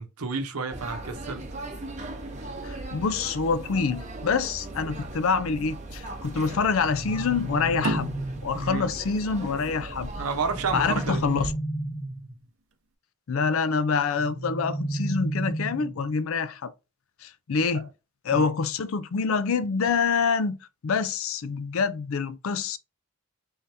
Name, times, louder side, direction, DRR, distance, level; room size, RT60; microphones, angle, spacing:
voice 1, 0.0-1.4 8.5-8.9 10.2-11.2 17.7-17.9 18.3-18.5, right 4 dB, 90° right, 0.8 m, -31 dB
sound 1, 0.7-11.5, right 2 dB, 35° right, 0.8 m, -38 dB
voice 2, 2.6-8.1 8.4-10.1 10.7-11.5 13.3-16.7 17.2-17.9 18.2-20.6 20.8-22.8, left 5 dB, 70° left, 0.4 m, -26 dB
sound 2, 6.8-8.7 10.4-12.4 14.2-16.1, right 1 dB, 25° left, 1.0 m, -32 dB
sound 3, 7.8-11.0, right 1 dB, 60° right, 0.6 m, -34 dB
3.8 x 3.3 x 2.7 m
head